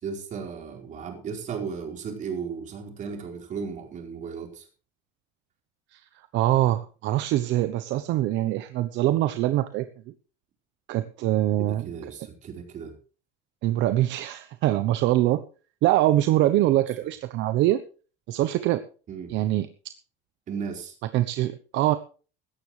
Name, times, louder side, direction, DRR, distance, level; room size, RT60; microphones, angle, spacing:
voice 1, 0.0-4.7 11.6-12.9 19.1-19.3 20.5-20.9, right 6 dB, 35° right, 3 dB, 4.5 m, -35 dB
voice 2, 6.3-9.9 10.9-11.9 13.6-15.4 15.8-17.8 18.3-18.8 19.3-19.7 21.1-21.9, right 14 dB, 60° right, 11 dB, 1.0 m, -23 dB
17.0 x 13.5 x 3.3 m, 0.37 s
cardioid pair, 155°, 21 cm